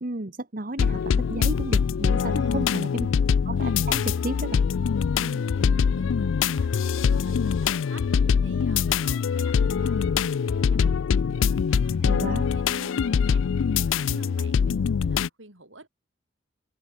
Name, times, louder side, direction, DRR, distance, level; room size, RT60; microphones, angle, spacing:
voice 1, 0.0-3.1 3.4-4.6 5.6-5.8 12.0-12.5, right 2 dB, 45° right, 1.4 m, -33 dB
sound 1, 0.8-15.3, left 6 dB, 80° left, 0.4 m, -23 dB
voice 2, 2.3-3.2 5.1-8.1 8.4-10.2 10.5-13.4 13.8-15.9, right 2 dB, 75° right, 7.1 m, -49 dB
head